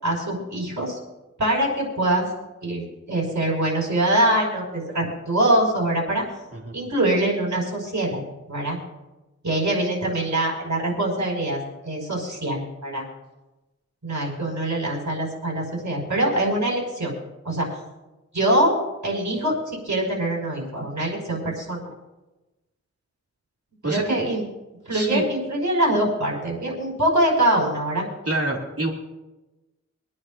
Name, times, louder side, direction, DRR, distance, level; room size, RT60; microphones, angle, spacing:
voice 1, 0.0-1.0 1.4-2.3 2.6-6.2 6.7-8.2 8.5-8.8 9.4-13.1 14.0-17.1 17.4-17.8 18.3-18.8 19.0-21.9 23.9-24.4 24.9-28.1, right 1 dB, 75° right, -3 dB, 5.2 m, -24 dB
voice 2, 23.8-24.2 24.9-25.2 28.3-28.9, right 2 dB, 55° right, -1 dB, 2.5 m, -26 dB
26.5 x 9.7 x 2.6 m, 1.0 s
wide cardioid pair, 45°, 29 cm